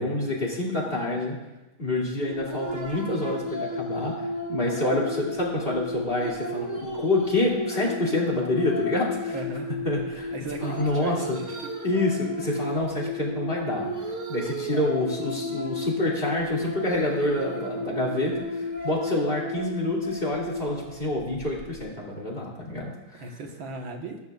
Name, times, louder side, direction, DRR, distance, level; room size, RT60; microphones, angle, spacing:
voice 1, 0.0-1.3 1.8-9.3 9.8-10.3 10.6-11.4 11.8-13.9 14.3-23.2, left 1 dB, 25° left, -4 dB, 2.7 m, -27 dB
sound 1, 2.3-21.8, left 1 dB, 30° right, 2.3 m, -33 dB
voice 2, 9.3-9.7 10.3-11.7 23.1-24.2, right 2 dB, 65° right, 2 dB, 2.0 m, -37 dB
20.5 x 12.0 x 2.4 m, 1.1 s
omnidirectional pair, 2.3 m